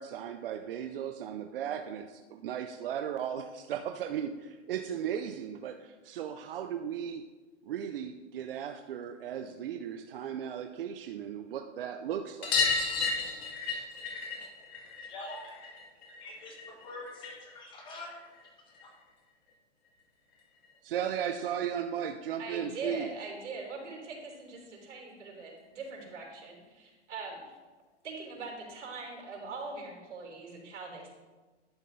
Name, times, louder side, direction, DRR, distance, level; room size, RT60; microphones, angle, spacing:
voice 1, 0.0-7.3 7.6-12.6 20.8-23.1, right 9 dB, 50° right, 7 dB, 0.6 m, -36 dB
sound 1, 12.4-17.5 17.8-19.0 20.3-20.4 20.6-20.7 21.0-21.1 22.4-22.5 22.8-22.9 23.2-23.3 24.6-24.7 25.4-25.5, left 4 dB, 60° left, 2.6 m, -34 dB
voice 2, 15.0-15.5 16.2-18.2 18.8-18.9, left 2 dB, 15° left, 1 dB, 1.1 m, -45 dB
voice 3, 22.4-27.6 28.0-31.1, right 3 dB, 90° right, 0 dB, 3.6 m, -42 dB
11.5 x 7.4 x 4.0 m, 1.3 s
hypercardioid pair, 170°, 35 cm